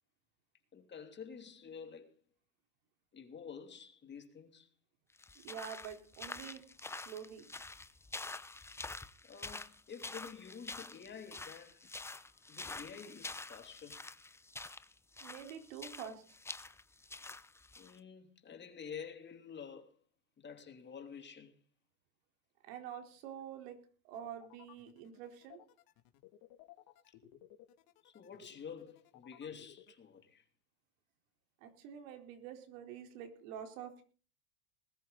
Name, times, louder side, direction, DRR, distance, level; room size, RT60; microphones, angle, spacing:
voice 1, 0.7-2.2 3.1-4.7 9.2-12.2 12.5-14.0 17.8-20.0 20.4-21.6 27.1-27.2 28.0-30.4, left 6 dB, 25° left, 2.8 m, -50 dB
sound 1, 5.2-18.0, left 3 dB, 5° left, 0.7 m, -47 dB
voice 2, 5.4-7.5 15.2-16.2 22.6-25.6 31.6-34.0, right 8 dB, 65° right, 4.2 m, -47 dB
sound 2, 24.1-29.9, left 13 dB, 55° left, 2.7 m, -58 dB
20.5 x 13.0 x 4.1 m
hypercardioid pair, 105°, 44 cm